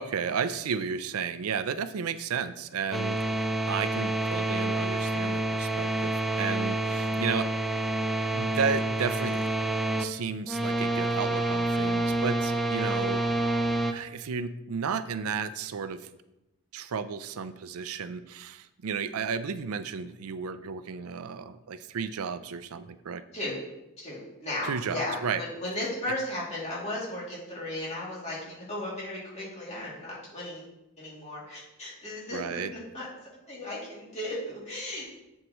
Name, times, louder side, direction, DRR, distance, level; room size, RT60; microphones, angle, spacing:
voice 1, 0.0-3.4 3.7-7.5 8.3-9.6 10.0-13.2 13.9-16.1 16.7-23.2 24.6-25.4 32.3-32.7, right 6 dB, 90° right, 12 dB, 0.5 m, -33 dB
sound 1, 2.9-10.1 10.4-13.9, right 1 dB, ahead, 0.3 m, -28 dB
voice 2, 24.0-30.6 31.0-33.1 33.5-35.1, left 1 dB, 30° left, -6 dB, 2.6 m, -35 dB
7.8 x 7.4 x 3.0 m, 0.92 s
head